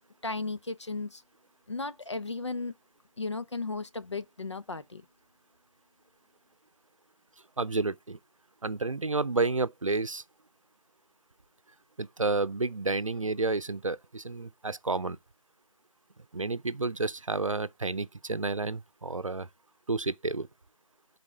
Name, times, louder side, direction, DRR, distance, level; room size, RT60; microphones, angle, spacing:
voice 1, 0.2-1.2 1.7-2.7 3.2-5.0, left 3 dB, 55° left, 0.9 m, -35 dB
voice 2, 7.6-8.2 8.6-10.2 12.0-15.2 16.3-19.5 19.9-20.5, right 3 dB, 70° right, 0.6 m, -30 dB
11.0 x 4.1 x 3.5 m
figure-of-eight pair, 165°, 17 cm